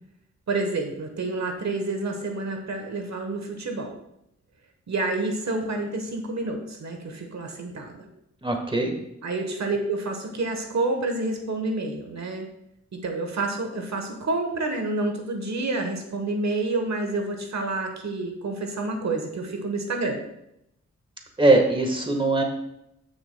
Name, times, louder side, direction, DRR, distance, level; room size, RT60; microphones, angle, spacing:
voice 1, 0.5-4.0 4.9-8.1 9.2-12.5 12.9-20.2, right 2 dB, 65° right, 3 dB, 1.2 m, -28 dB
voice 2, 8.4-8.9 21.4-22.4, right 2 dB, 15° right, 2 dB, 1.5 m, -20 dB
14.0 x 6.3 x 2.3 m, 0.81 s
wide cardioid pair, 90°, 30 cm